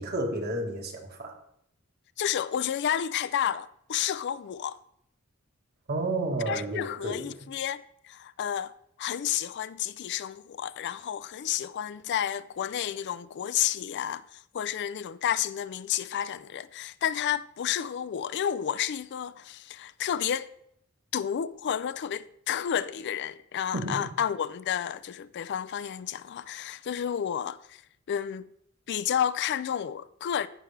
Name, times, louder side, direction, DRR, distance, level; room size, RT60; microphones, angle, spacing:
voice 1, 0.0-1.4 5.9-7.3 23.7-24.1, right 2 dB, 50° right, 1.5 m, -31 dB
voice 2, 2.2-4.8 6.5-8.7 9.0-20.5 21.1-27.8 28.1-28.5 28.9-30.5, left 9 dB, 55° left, 0.4 m, -31 dB
15.0 x 5.9 x 3.3 m
head